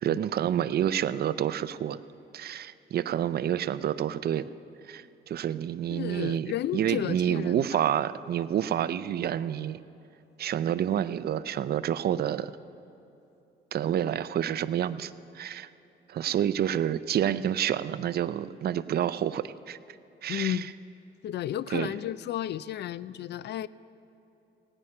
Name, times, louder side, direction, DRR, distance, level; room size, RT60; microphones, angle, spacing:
voice 1, 0.0-2.0 2.3-4.4 4.9-9.8 10.4-12.5 13.7-15.7 16.1-19.8 20.2-20.7 21.7-21.9, right 10 dB, 55° right, 15 dB, 0.5 m, -28 dB
voice 2, 5.9-7.8 20.3-20.7 21.2-23.7, left 12 dB, 60° left, 18 dB, 0.4 m, -33 dB
17.0 x 9.8 x 5.5 m, 2.9 s
cardioid pair, 90°, 20 cm